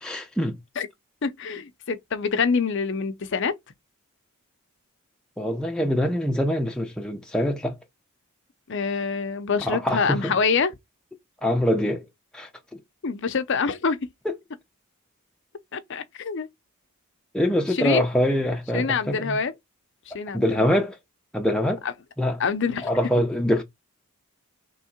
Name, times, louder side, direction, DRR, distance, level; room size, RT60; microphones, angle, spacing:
voice 1, 0.0-0.6 5.4-7.8 9.6-10.4 11.4-12.0 12.3-12.8 14.2-14.3 17.3-19.4 20.3-21.0 21.3-21.8 22.2-22.4 22.8-23.6, equal, 5° left, 0.6 m, -24 dB
voice 2, 1.2-3.5 8.7-10.7 13.0-14.0 15.7-16.5 17.7-18.0 18.7-19.5 20.1-20.7 21.8-21.9 22.4-22.9, left 5 dB, 55° left, 0.6 m, -25 dB
3.6 x 3.1 x 4.3 m
head